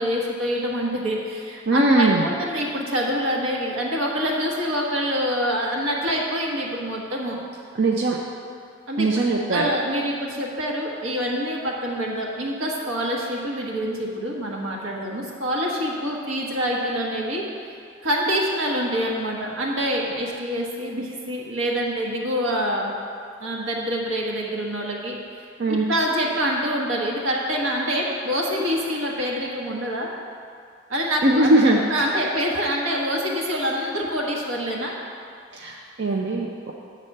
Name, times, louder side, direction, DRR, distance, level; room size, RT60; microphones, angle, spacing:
voice 1, 0.0-7.4 8.9-9.1 9.5-17.4 18.0-23.0 23.4-25.2 25.7-30.1 30.9-34.9, equal, 80° right, -2 dB, 1.3 m, -26 dB
voice 2, 1.7-2.3 7.7-8.2 9.0-9.7 25.6-25.9 31.2-32.3 35.5-36.7, right 2 dB, 55° right, -2 dB, 0.5 m, -20 dB
8.5 x 4.2 x 6.5 m, 2.3 s
head